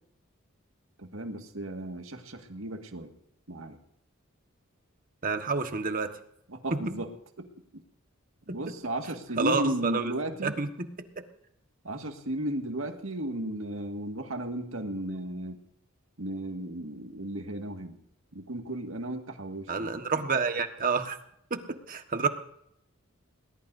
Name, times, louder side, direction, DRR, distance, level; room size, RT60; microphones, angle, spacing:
voice 1, 1.0-3.1 3.5-3.8 6.5-7.8 8.5-10.6 11.8-15.6 16.2-18.0 18.3-19.9, right 1 dB, 80° right, 4 dB, 2.0 m, -35 dB
voice 2, 5.2-6.1 6.7-6.8 8.5-8.6 9.4-10.1 10.4-10.9 19.7-21.2 21.5-22.3, right 4 dB, 40° right, 7 dB, 1.5 m, -29 dB
21.0 x 20.0 x 2.7 m, 0.71 s
head